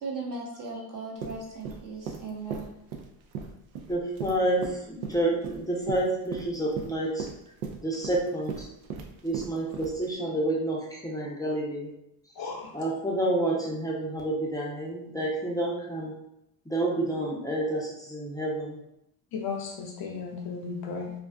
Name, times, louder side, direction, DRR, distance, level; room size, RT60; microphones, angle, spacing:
voice 1, 0.0-2.7, right 3 dB, 40° right, -2 dB, 0.8 m, -37 dB
sound 1, 1.2-10.1, right 6 dB, 80° right, 0.6 m, -38 dB
voice 2, 3.9-7.3 7.8-8.7 9.2-11.9 12.7-16.1 16.7-18.8, right 1 dB, 5° left, -4 dB, 0.6 m, -29 dB
voice 3, 12.3-12.7 19.3-21.1, left 5 dB, 50° left, 0 dB, 0.6 m, -35 dB
2.4 x 2.3 x 2.3 m, 0.80 s
hypercardioid pair, 60°, 50 cm